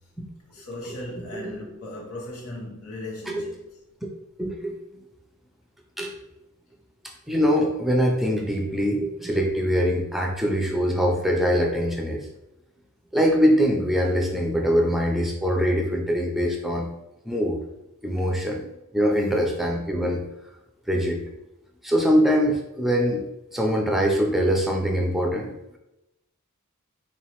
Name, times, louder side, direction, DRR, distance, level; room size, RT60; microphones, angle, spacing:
voice 1, 0.5-3.7, left 1 dB, 80° left, 0.9 m, -37 dB
voice 2, 4.4-4.8 6.0-6.1 7.3-12.3 13.1-16.9 17.3-17.6 18.0-18.6 18.9-20.2 20.9-21.2 21.8-25.8, equal, ahead, 0.5 m, -23 dB
3.8 x 3.0 x 3.0 m
head